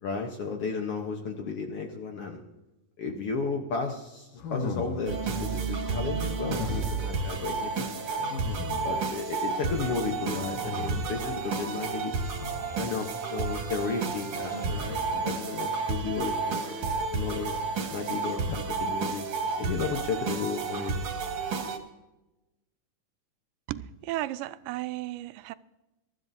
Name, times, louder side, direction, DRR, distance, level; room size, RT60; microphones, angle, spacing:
voice 1, 0.0-2.4 3.0-8.3 8.8-12.3 12.8-17.6 17.9-19.2 19.6-21.0, left 4 dB, 60° left, 1.6 m, -33 dB
sound 1, 4.4-5.3 6.4-7.2 8.3-9.1 10.3-11.3 12.4-12.9 14.5-15.2, left 4 dB, 85° left, 2.9 m, -37 dB
sound 2, 5.1-21.8, right 4 dB, 55° right, 2.4 m, -31 dB
voice 2, 23.7-25.5, right 15 dB, 85° right, 2.2 m, -34 dB
23.0 x 13.0 x 2.7 m
omnidirectional pair, 3.8 m